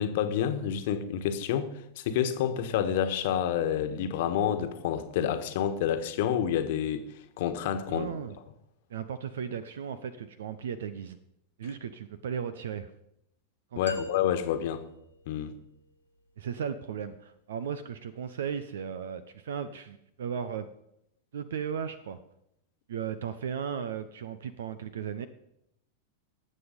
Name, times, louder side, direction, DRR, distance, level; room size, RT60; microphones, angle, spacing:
voice 1, 0.0-7.1 7.4-8.1 13.8-14.8 15.3-15.5, left 9 dB, 50° left, 1.4 m, -28 dB
voice 2, 7.9-8.4 8.9-11.2 11.6-12.9 13.7-14.0 16.4-20.7 21.3-22.2 22.9-25.3, right 7 dB, 60° right, 0.7 m, -36 dB
sound 1, 13.9-15.9, left 1 dB, 90° left, 1.9 m, -42 dB
19.0 x 7.6 x 5.2 m
figure-of-eight pair, 90°, 0 cm